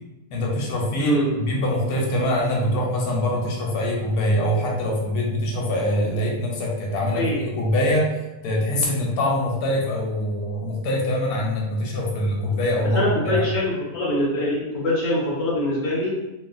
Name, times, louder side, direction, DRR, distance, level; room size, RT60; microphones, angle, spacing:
voice 1, 0.3-8.1 8.4-13.5, left 1 dB, 85° left, -2 dB, 1.2 m, -24 dB
voice 2, 1.0-1.3 7.1-7.4 12.9-16.2, left 1 dB, 35° left, -6 dB, 0.8 m, -23 dB
2.9 x 2.7 x 2.4 m, 1.0 s
omnidirectional pair, 1.7 m